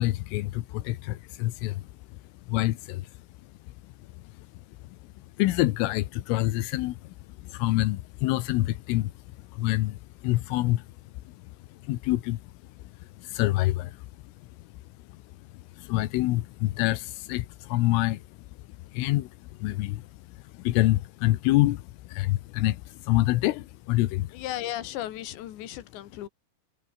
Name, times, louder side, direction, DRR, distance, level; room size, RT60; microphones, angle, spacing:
voice 1, 0.0-1.9 2.5-3.1 4.4-4.5 5.4-9.1 9.5-10.9 11.3-11.4 11.7-12.4 12.8-12.9 13.2-14.1 15.8-18.2 18.9-24.3, left 17 dB, 85° left, 3.7 m, -27 dB
voice 2, 24.3-26.3, left 13 dB, 70° left, 4.1 m, -35 dB
omnidirectional pair, 5.7 m